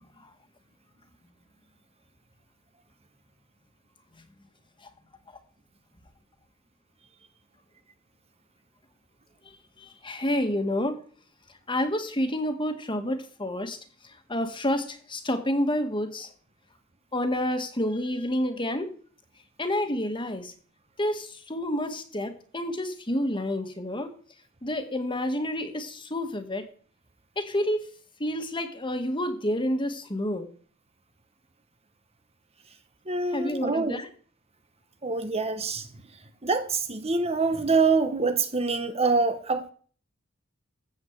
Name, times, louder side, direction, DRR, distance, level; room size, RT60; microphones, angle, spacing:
voice 1, 9.8-11.0 11.7-13.8 14.3-16.3 17.1-18.9 19.6-20.5 21.0-24.1 24.6-26.6 27.4-27.9 28.2-30.5 33.3-34.1, left 1 dB, 25° left, 1.8 m, -29 dB
voice 2, 33.1-34.0 35.0-35.9 36.4-39.7, right 4 dB, 30° right, 1.2 m, -25 dB
15.0 x 5.0 x 8.1 m
head